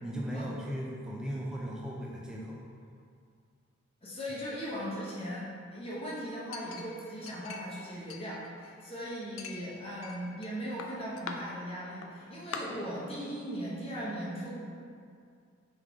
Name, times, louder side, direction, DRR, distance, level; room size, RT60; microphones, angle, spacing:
voice 1, 0.0-2.6, equal, 5° right, -4 dB, 0.4 m, -37 dB
voice 2, 4.0-14.6, equal, 25° left, -6 dB, 0.7 m, -38 dB
Chink clink, 6.5-7.8 8.1-8.9 9.4-10.5 10.8-11.4 12.0-12.1 12.5-12.6, left 6 dB, 70° left, 0.3 m, -43 dB
3.5 x 3.2 x 3.6 m, 2.3 s
head